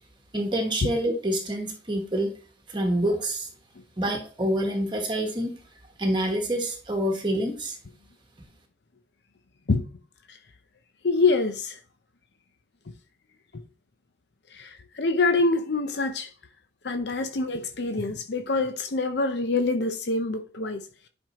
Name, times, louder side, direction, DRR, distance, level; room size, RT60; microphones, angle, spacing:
voice 1, 0.3-2.3 2.7-3.5 4.0-5.5 6.0-7.8, right 1 dB, 25° right, 1.2 m, -27 dB
voice 2, 11.0-11.8 13.5-13.6 14.5-16.3 16.8-20.9, left 3 dB, 70° left, 0.7 m, -25 dB
10.5 x 5.3 x 3.0 m
head